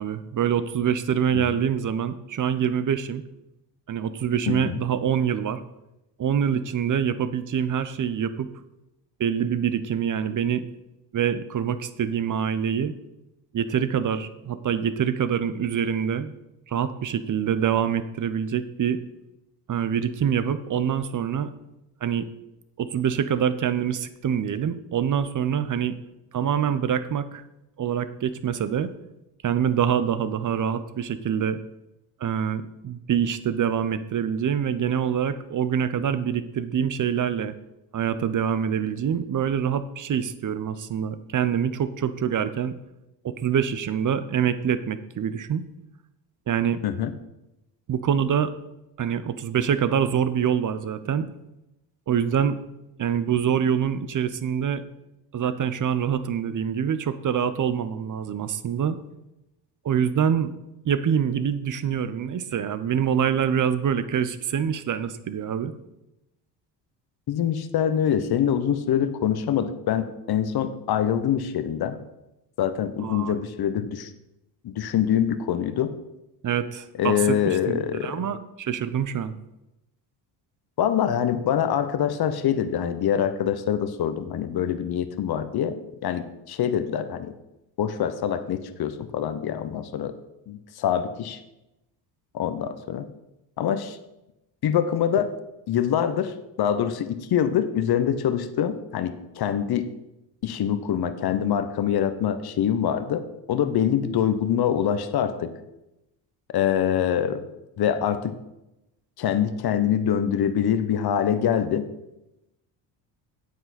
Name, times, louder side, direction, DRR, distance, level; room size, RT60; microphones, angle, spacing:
voice 1, 0.0-3.2 3.9-5.6 6.2-8.5 9.2-10.6 11.1-13.0 13.5-16.3 16.7-19.0 19.7-21.5 22.0-22.3 22.8-26.0 26.3-27.4 27.8-28.9 29.4-31.6 32.2-37.5 37.9-42.7 43.2-45.6 46.5-46.8 47.9-48.5 49.0-51.3 52.1-52.6 53.0-54.8 55.3-59.0 59.8-60.5 60.8-65.7 73.0-73.4 76.4-79.3, right 8 dB, 40° right, 12 dB, 0.9 m, -25 dB
voice 2, 4.5-4.8 46.8-47.1 67.3-72.0 72.6-74.1 74.6-75.9 77.0-78.3 80.8-85.8 86.0-87.3 87.8-90.1 90.5-91.4 92.3-93.1 93.6-94.0 94.6-95.3 95.7-99.9 100.4-105.5 106.5-107.4 107.8-108.4 109.2-111.9, left 9 dB, 50° left, 11 dB, 1.0 m, -25 dB
9.4 x 7.9 x 4.3 m, 0.92 s
supercardioid pair, 70°, 50 cm